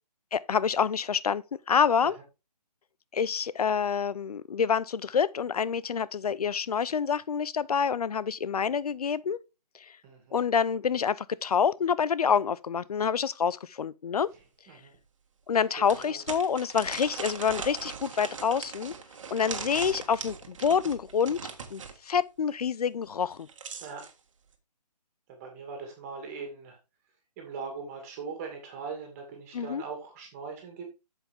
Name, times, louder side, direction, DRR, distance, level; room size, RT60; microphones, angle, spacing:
voice 1, 0.3-2.1 3.1-9.4 10.3-14.3 15.5-18.9 19.3-21.4 21.7-23.5 29.5-29.8, left 7 dB, 65° left, 0.6 m, -27 dB
voice 2, 10.0-10.4 14.3-14.9 15.5-16.2 23.8-24.0 25.3-26.8 27.4-30.8, right 5 dB, 20° right, 2.2 m, -41 dB
sound 1, 14.4-14.5 14.9-15.0 15.9-22.0 23.2-24.1, right 6 dB, 50° right, 1.7 m, -40 dB
8.3 x 7.3 x 3.5 m
figure-of-eight pair, 155°, 21 cm